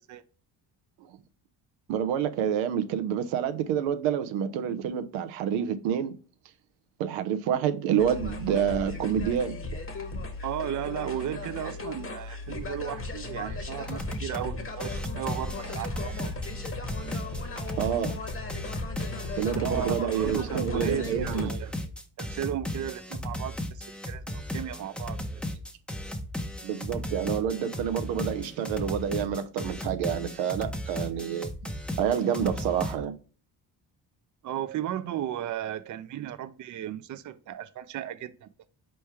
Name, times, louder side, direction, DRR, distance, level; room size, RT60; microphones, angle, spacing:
voice 1, 1.9-6.1 7.0-9.6 17.8-18.1 19.4-21.5 26.6-31.5 32.0-33.2, right 8 dB, 90° right, 0.6 m, -28 dB
sound 1, 8.0-21.5, left 3 dB, 30° left, 1.1 m, -37 dB
voice 2, 10.4-16.3 19.6-21.7 22.2-25.5 34.4-38.5, right 10 dB, 40° right, 0.5 m, -35 dB
sound 2, 13.5-13.6 13.9-14.5 14.8-33.0, left 1 dB, ahead, 0.6 m, -36 dB
4.3 x 3.2 x 3.3 m
supercardioid pair, 60°, 45 cm